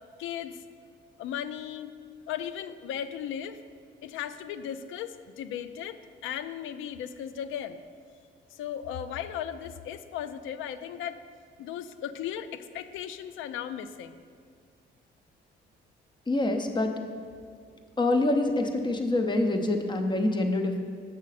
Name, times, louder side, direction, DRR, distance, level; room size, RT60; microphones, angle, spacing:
voice 1, 0.2-0.6 1.2-1.9 2.3-3.6 4.0-7.8 8.5-11.2 11.6-14.2, left 9 dB, 80° left, 12 dB, 0.4 m, -36 dB
voice 2, 16.3-16.9 18.0-20.8, left 2 dB, 25° left, 5 dB, 0.7 m, -26 dB
6.3 x 6.2 x 4.1 m, 2.1 s
cardioid pair, 90°, 20 cm